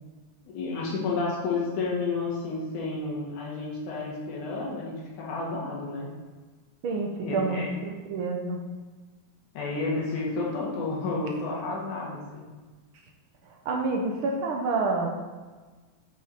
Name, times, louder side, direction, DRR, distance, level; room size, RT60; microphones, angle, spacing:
voice 1, 0.5-6.1 7.2-7.7 9.5-12.5, left 3 dB, 85° left, -4 dB, 2.9 m, -31 dB
voice 2, 6.8-8.6 13.4-15.1, right 3 dB, 70° right, 1 dB, 1.3 m, -28 dB
6.4 x 6.3 x 4.1 m, 1.3 s
omnidirectional pair, 3.4 m